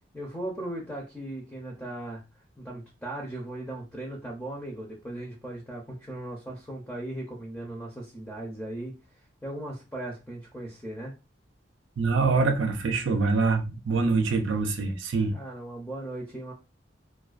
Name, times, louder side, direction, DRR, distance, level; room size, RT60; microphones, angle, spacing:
voice 1, 0.0-2.2 2.6-11.1 15.2-16.5, right 1 dB, 5° left, 0.5 m, -38 dB
voice 2, 12.0-15.4, right 4 dB, 90° right, 0.4 m, -25 dB
2.3 x 2.2 x 2.3 m
head